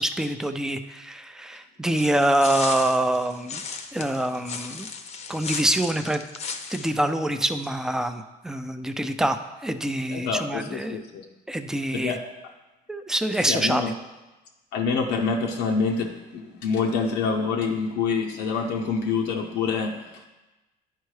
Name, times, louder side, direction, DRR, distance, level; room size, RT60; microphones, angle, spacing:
voice 1, 0.0-3.6 3.9-4.9 5.3-6.2 6.7-11.0 11.5-12.2 12.9-13.8, right 1 dB, 5° right, 8 dB, 0.4 m, -25 dB
sound 1, 2.0-6.9, left 5 dB, 40° left, 0.6 m, -35 dB
voice 2, 10.1-11.2 11.9-12.2 13.4-13.9 14.7-20.3, left 5 dB, 90° left, 1 dB, 0.6 m, -26 dB
10.5 x 4.5 x 3.2 m, 1.1 s
cardioid pair, 110°, 17 cm